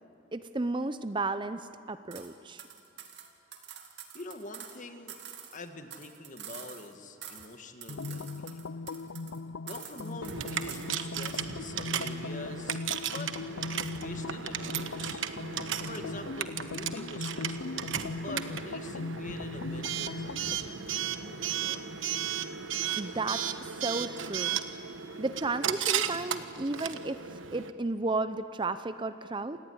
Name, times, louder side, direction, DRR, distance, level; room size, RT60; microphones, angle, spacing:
voice 1, 0.3-2.6 23.0-24.6 25.2-29.6, right 3 dB, 25° right, 12 dB, 0.6 m, -33 dB
sound 1, 2.1-2.3 2.6-4.8 5.1-6.9 7.2-7.6 7.8-9.4 9.7-10.9 11.2-11.5, right 9 dB, 60° right, 2.4 m, -47 dB
voice 2, 4.1-5.2 5.5-8.7 9.6-13.3 13.7-15.2 15.8-17.8 18.2-21.9, left 2 dB, 40° left, 6 dB, 1.9 m, -45 dB
sound 2, 7.9-20.6, left 3 dB, 85° left, 0.6 m, -39 dB
Coin (dropping) / Alarm, 10.2-27.7, right 8 dB, 80° right, 1.2 m, -35 dB
28.0 x 19.0 x 9.6 m, 2.8 s
head